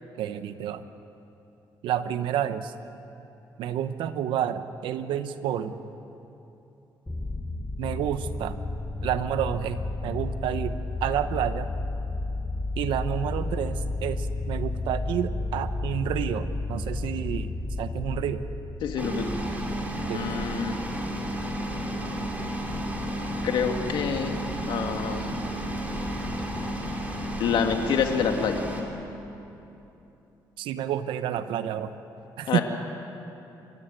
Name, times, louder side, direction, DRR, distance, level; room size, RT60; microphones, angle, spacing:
voice 1, 0.2-0.9 1.8-2.7 3.6-5.8 7.8-8.6 9.0-11.7 12.8-18.4 20.1-20.4 30.6-31.9 32.4-32.6, right 10 dB, 90° right, 11 dB, 1.0 m, -30 dB
sound 1, 7.1-19.9, left 2 dB, 10° left, 2.9 m, -32 dB
voice 2, 18.8-19.2 20.1-20.8 23.4-24.3 24.7-25.3 27.4-28.6 32.5-32.6, left 7 dB, 80° left, 4 dB, 2.1 m, -27 dB
sound 2, 19.0-28.8, equal, 20° right, 3.9 m, -32 dB
27.5 x 14.5 x 8.9 m, 2.9 s
cardioid pair, 90°, 8 cm